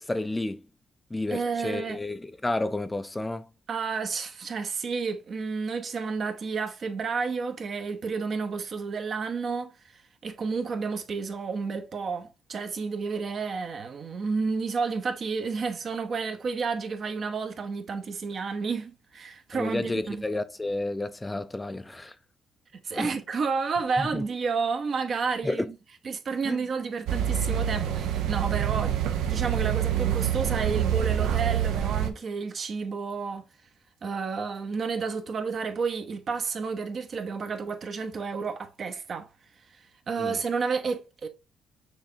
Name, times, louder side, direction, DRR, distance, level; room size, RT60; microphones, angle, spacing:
voice 1, 0.1-0.6 1.1-3.5 19.5-22.1 22.9-23.1 24.0-24.2 25.4-25.7 26.4-26.6 40.2-40.4, left 2 dB, 15° left, 0.4 m, -31 dB
voice 2, 1.3-2.0 3.7-9.7 10.2-20.2 22.7-25.7 26.0-33.5 34.0-39.3 40.1-41.3, right 5 dB, 50° right, 0.7 m, -31 dB
sound 1, 27.1-32.1, right 10 dB, 85° right, 0.5 m, -26 dB
6.2 x 2.6 x 2.7 m
cardioid pair, 90°, 0 cm